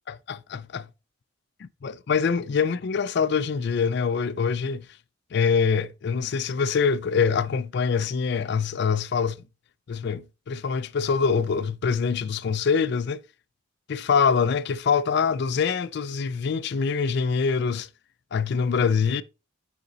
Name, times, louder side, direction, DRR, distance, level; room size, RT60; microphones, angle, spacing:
voice 1, 0.1-0.9 1.8-4.9 5.3-9.4 9.9-13.2 13.9-17.9 18.3-19.2, left 6 dB, 55° left, 0.4 m, -24 dB
6.7 x 5.1 x 3.9 m
head